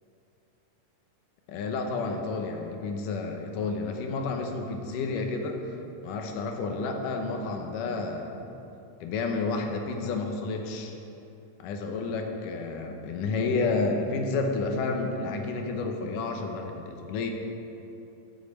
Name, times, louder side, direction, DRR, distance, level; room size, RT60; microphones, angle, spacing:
voice 1, 1.5-5.6 6.0-8.5 9.0-11.0 11.6-17.3, left 3 dB, 90° left, 3 dB, 2.6 m, -30 dB
11.5 x 7.4 x 7.2 m, 2.8 s
omnidirectional pair, 3.7 m